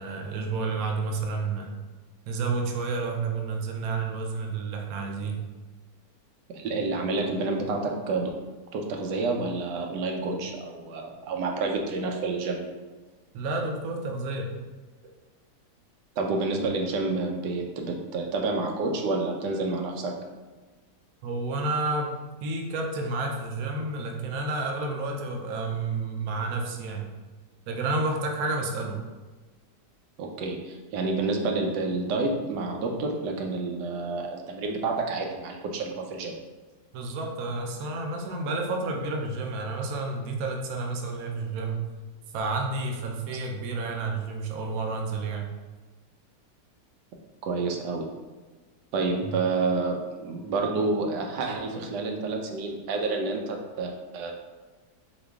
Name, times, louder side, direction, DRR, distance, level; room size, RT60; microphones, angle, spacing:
voice 1, 0.0-1.8 2.3-5.4 13.3-14.5 21.2-27.1 27.7-29.0 36.9-41.8 42.3-45.5 49.2-49.4, right 3 dB, 70° right, 2 dB, 1.0 m, -30 dB
voice 2, 6.5-8.3 8.7-12.7 16.2-20.1 30.2-36.4 47.4-48.1 48.9-54.3, right 3 dB, 90° right, 2 dB, 1.2 m, -29 dB
4.0 x 2.9 x 3.4 m, 1.3 s
omnidirectional pair, 1.8 m